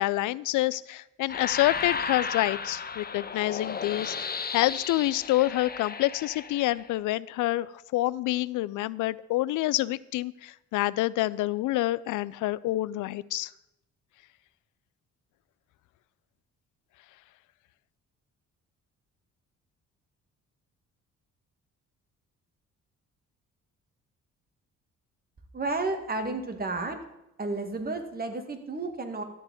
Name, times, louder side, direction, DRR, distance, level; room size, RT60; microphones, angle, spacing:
voice 1, 0.0-13.5, left 16 dB, 80° left, 20 dB, 0.5 m, -27 dB
sound 1, 1.3-7.0, left 5 dB, 30° left, 0.9 m, -34 dB
voice 2, 25.5-27.0 27.4-29.2, right 3 dB, 30° right, 6 dB, 1.9 m, -32 dB
13.5 x 4.7 x 8.8 m, 0.90 s
cardioid pair, 90°, 30 cm